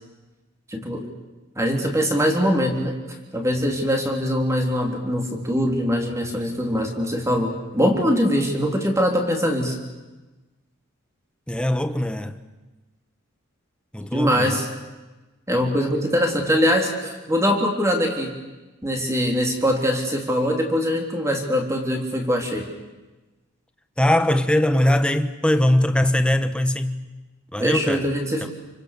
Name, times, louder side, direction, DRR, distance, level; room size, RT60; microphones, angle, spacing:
voice 1, 0.7-1.0 1.6-3.0 3.3-9.8 14.1-14.7 15.5-18.3 18.8-22.7 27.6-28.5, equal, 15° right, 3.6 m, -22 dB
voice 2, 11.5-12.4 13.9-14.7 24.0-27.0 27.5-28.1 28.4-28.5, left 1 dB, 5° left, 1.1 m, -21 dB
28.5 x 25.5 x 6.8 m
head